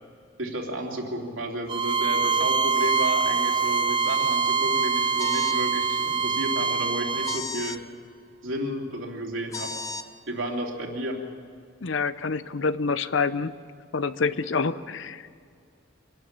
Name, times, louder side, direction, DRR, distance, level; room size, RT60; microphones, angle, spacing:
voice 1, 0.4-7.8 8.4-9.7 10.3-11.2, right 1 dB, 75° right, 0 dB, 3.1 m, -32 dB
Bowed string instrument, 1.7-7.4, right 5 dB, 25° right, 0.5 m, -24 dB
sound 1, 5.2-5.6 7.2-7.8 9.5-10.0, left 3 dB, 15° left, 0.7 m, -34 dB
voice 2, 11.8-13.5 13.9-15.4, left 4 dB, 70° left, 14 dB, 0.7 m, -27 dB
25.0 x 12.0 x 8.8 m, 2.3 s
head